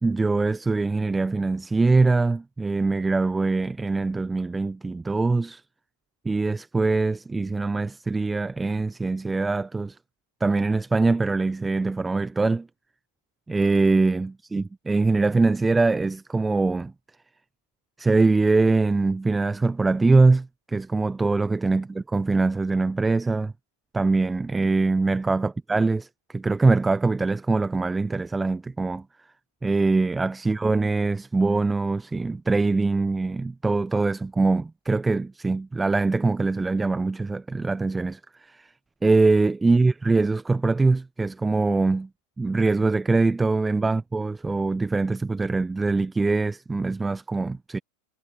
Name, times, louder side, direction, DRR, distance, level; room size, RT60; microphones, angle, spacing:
voice 1, 0.0-5.6 6.2-10.0 10.4-12.7 13.5-16.9 18.0-23.5 23.9-29.0 29.6-38.7 39.0-42.1 42.4-47.8, right 3 dB, 10° right, 1.1 m, -23 dB
figure-of-eight pair, 90°, 0 cm